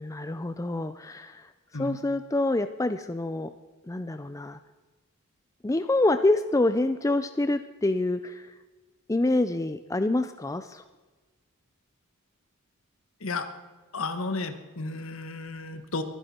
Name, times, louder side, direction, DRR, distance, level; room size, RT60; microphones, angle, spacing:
voice 1, 0.0-1.5 1.7-3.5 3.9-4.6 5.6-8.5 9.1-10.8, left 2 dB, 15° left, 10 dB, 0.4 m, -26 dB
voice 2, 13.9-16.0, left 3 dB, 65° left, 8 dB, 1.4 m, -33 dB
22.5 x 10.0 x 4.4 m, 1.3 s
head